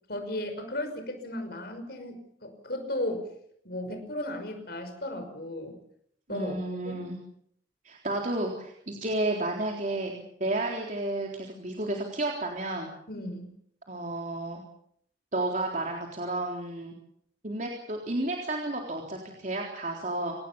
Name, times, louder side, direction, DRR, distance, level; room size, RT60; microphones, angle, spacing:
voice 1, 0.1-3.3 3.6-5.8 6.3-6.6 6.8-7.0 13.1-13.5, left 1 dB, 60° left, 6 dB, 5.8 m, -35 dB
voice 2, 6.3-7.2 7.8-12.9 13.9-14.6 15.3-17.0 17.4-20.3, right 2 dB, 45° right, 0 dB, 3.8 m, -32 dB
27.5 x 19.0 x 7.1 m, 0.68 s
head